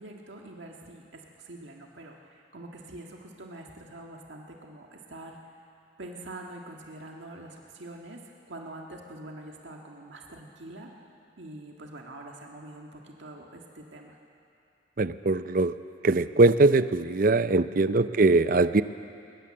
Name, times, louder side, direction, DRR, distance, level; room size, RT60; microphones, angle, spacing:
voice 1, 0.0-5.4 6.0-8.2 8.5-10.9 11.4-14.2 18.0-18.3, right 1 dB, 75° right, 0 dB, 1.7 m, -45 dB
voice 2, 15.0-15.7 16.0-18.8, right 3 dB, 45° right, 13 dB, 0.5 m, -21 dB
21.0 x 19.5 x 7.7 m, 2.6 s
head